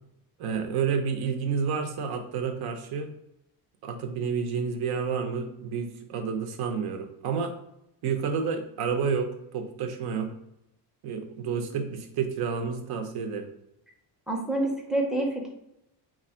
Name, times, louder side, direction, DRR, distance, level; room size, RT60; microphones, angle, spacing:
voice 1, 0.4-3.1 3.8-7.5 8.0-10.3 11.0-13.5, right 6 dB, 65° right, 4 dB, 0.8 m, -30 dB
voice 2, 14.3-15.5, right 1 dB, ahead, 1 dB, 0.5 m, -27 dB
4.5 x 2.5 x 4.3 m, 0.83 s
cardioid pair, 180°, 40 cm